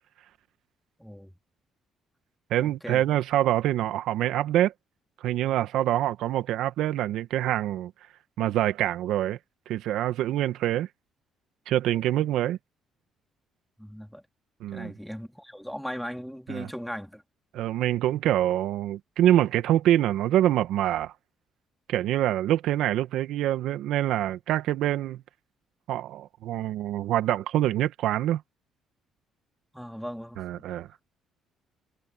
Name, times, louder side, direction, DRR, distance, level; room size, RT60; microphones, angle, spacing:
voice 1, 1.0-1.3 2.6-3.0 13.8-14.2 14.7-17.2 29.7-30.6, equal, ahead, 3.4 m, -38 dB
voice 2, 2.5-4.7 5.2-7.9 8.4-9.4 9.7-10.9 11.7-12.6 14.6-14.9 16.5-16.7 17.5-21.1 21.9-25.2 25.9-28.4 30.4-30.9, right 13 dB, 75° right, 1.5 m, -25 dB
supercardioid pair, 60°, 0 cm